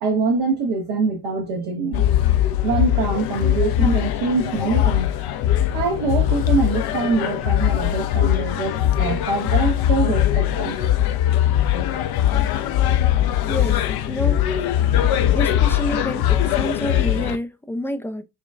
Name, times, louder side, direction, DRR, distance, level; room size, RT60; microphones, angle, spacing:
voice 1, 0.0-2.0 2.6-5.1 5.7-10.8, right 4 dB, 70° right, 0.9 m, -24 dB
sound 1, 1.9-17.4, left 12 dB, 55° left, 0.6 m, -20 dB
voice 2, 13.5-14.8 15.3-18.2, equal, 5° left, 0.3 m, -29 dB
5.9 x 2.3 x 2.2 m
hypercardioid pair, 50°, 45 cm